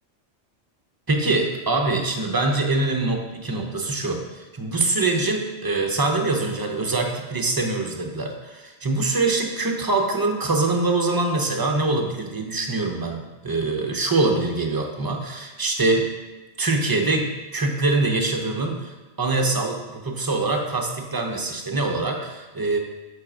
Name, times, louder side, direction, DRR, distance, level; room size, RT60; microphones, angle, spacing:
voice 1, 1.1-16.1 16.6-22.8, right 3 dB, 25° right, 3 dB, 0.6 m, -24 dB
7.3 x 4.2 x 4.9 m, 1.2 s
omnidirectional pair, 1.1 m